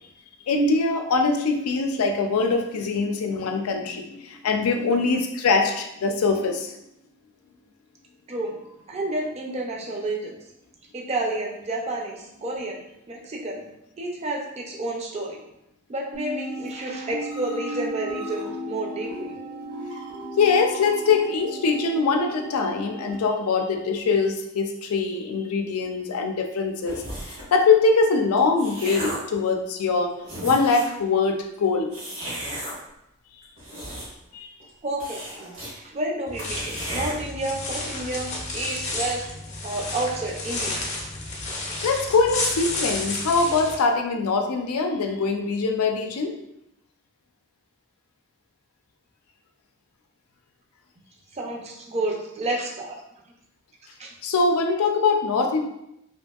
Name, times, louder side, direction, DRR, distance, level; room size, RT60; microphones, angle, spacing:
voice 1, 0.5-6.7 20.4-30.1 30.4-31.9 34.3-34.5 41.8-46.3 54.2-55.6, left 4 dB, 90° left, 4 dB, 0.4 m, -23 dB
voice 2, 8.9-10.4 10.9-13.6 14.0-15.4 15.9-19.3 34.8-35.2 35.8-39.3 39.6-40.9 51.3-53.0 54.0-54.1, right 2 dB, 30° right, 0 dB, 0.5 m, -30 dB
sound 1, 16.1-23.2, equal, 60° right, 0.9 m, -35 dB
sound 2, 26.9-27.5 28.2-29.3 29.9-30.0 30.2-31.0 31.9-32.7 33.4-34.3 34.6-34.7 35.0-35.7 36.0-36.1 36.4-37.1, right 1 dB, 75° right, 1.3 m, -34 dB
sound 3, 36.3-43.8, left 2 dB, 30° left, 0.5 m, -31 dB
2.8 x 2.6 x 2.3 m, 0.81 s
head